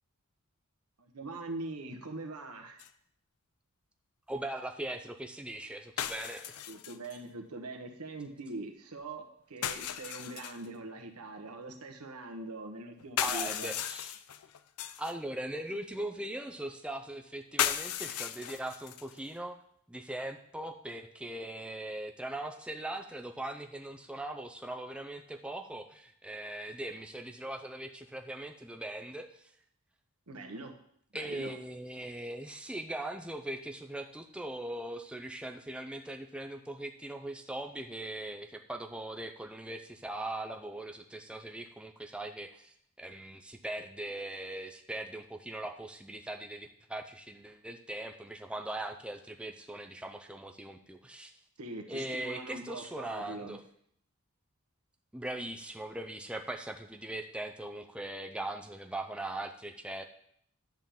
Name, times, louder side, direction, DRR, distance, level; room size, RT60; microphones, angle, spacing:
voice 1, 1.0-2.8 6.7-13.7 30.3-30.8 31.1-31.6 51.6-53.6, right 2 dB, 85° right, 4 dB, 1.2 m, -42 dB
sound 1, 2.8-2.9 6.0-7.2 9.6-10.7 13.0-15.1 17.6-19.2, left 10 dB, 85° left, 0.5 m, -35 dB
voice 2, 4.3-6.6 13.2-14.2 15.0-19.6 19.9-29.5 31.1-51.3 51.9-53.6 55.1-60.0, right 1 dB, 5° right, 4 dB, 0.5 m, -40 dB
10.5 x 3.8 x 7.1 m, 0.67 s
head